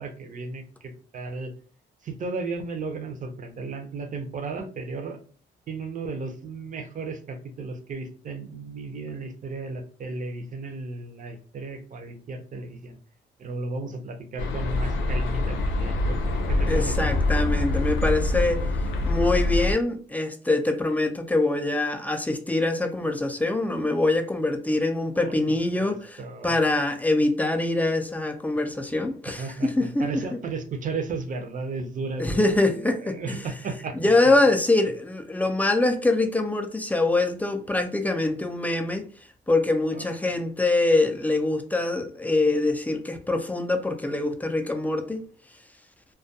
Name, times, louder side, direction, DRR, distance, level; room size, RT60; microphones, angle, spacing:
voice 1, 0.0-1.5 2.0-5.2 5.7-13.0 13.4-17.5 25.1-26.5 29.3-34.0 39.9-40.2, right 3 dB, 40° right, 0.5 m, -35 dB
sound 1, 14.4-19.7, left 2 dB, 80° left, 0.5 m, -25 dB
voice 2, 16.7-18.6 19.0-30.1 32.2-33.4 34.0-39.1 39.5-45.2, left 2 dB, 10° left, 0.3 m, -24 dB
2.2 x 2.2 x 2.7 m
cardioid pair, 90°, 20 cm